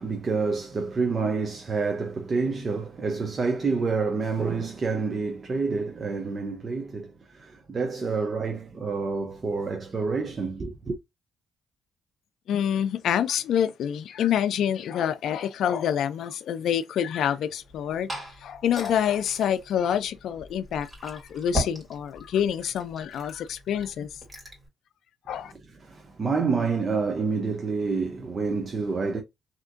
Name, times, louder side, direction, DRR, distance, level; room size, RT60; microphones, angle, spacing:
voice 1, 0.0-11.0 25.8-29.2, right 4 dB, 40° right, 0.6 m, -28 dB
voice 2, 12.5-18.1 18.4-24.1 25.3-25.5, left 9 dB, 70° left, 0.4 m, -27 dB
Glass / Fill (with liquid), 17.6-24.7, equal, 15° right, 2.3 m, -38 dB
3.4 x 2.8 x 2.5 m
cardioid pair, 90°, 0 cm